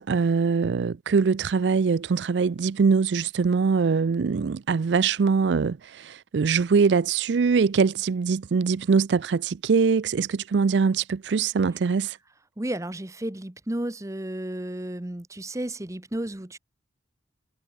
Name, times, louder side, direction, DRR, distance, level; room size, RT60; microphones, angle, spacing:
voice 1, 0.0-12.2, right 5 dB, 70° right, 0.4 m, -23 dB
voice 2, 12.6-16.6, right 1 dB, 15° right, 0.9 m, -32 dB
head